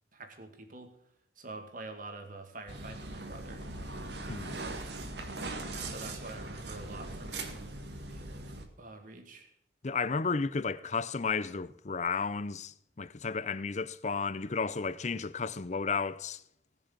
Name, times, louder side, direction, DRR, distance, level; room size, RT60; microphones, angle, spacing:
voice 1, 0.1-0.9 1.4-3.6 5.8-7.7 8.1-9.5, right 2 dB, 50° right, 2.2 m, -46 dB
sound 1, 2.7-8.7, right 2 dB, 75° right, 1.9 m, -40 dB
voice 2, 4.3-4.6 9.8-16.4, left 4 dB, 40° left, 0.6 m, -33 dB
18.5 x 6.9 x 7.4 m
head